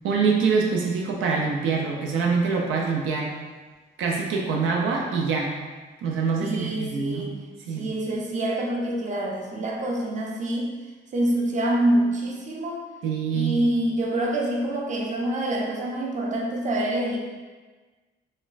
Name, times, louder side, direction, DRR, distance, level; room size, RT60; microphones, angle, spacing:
voice 1, 0.0-3.3 4.0-5.6 6.0-7.3 7.7-7.9 13.0-13.5, right 5 dB, 85° right, -1 dB, 0.5 m, -25 dB
voice 2, 6.4-7.4 7.7-10.7 11.1-12.8 13.3-17.2, right 1 dB, 40° right, -1 dB, 0.6 m, -26 dB
4.2 x 2.2 x 2.5 m, 1.3 s
cardioid pair, 90°, 20 cm